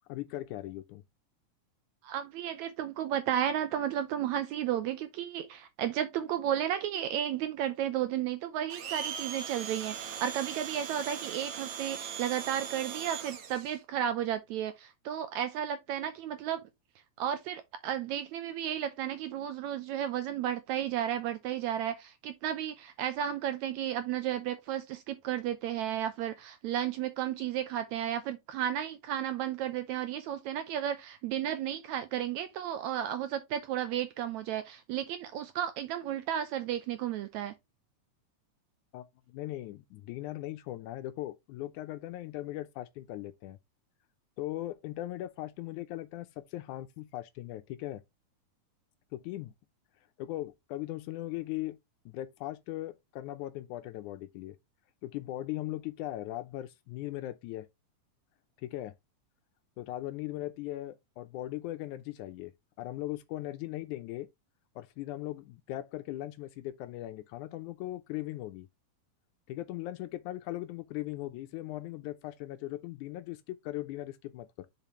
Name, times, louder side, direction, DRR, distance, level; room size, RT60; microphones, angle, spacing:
voice 1, 0.1-1.0 38.9-43.6 44.4-48.0 49.1-49.5 50.2-51.8 52.1-54.6 55.0-57.7 58.6-58.9 59.8-62.5 62.8-64.3 64.8-68.7 69.5-74.7, left 15 dB, 80° left, 1.9 m, -39 dB
voice 2, 2.0-16.6 17.2-37.5, right 10 dB, 80° right, 1.8 m, -33 dB
Domestic sounds home sounds, 8.7-13.8, right 7 dB, 60° right, 1.8 m, -39 dB
6.8 x 5.7 x 3.0 m
omnidirectional pair, 3.8 m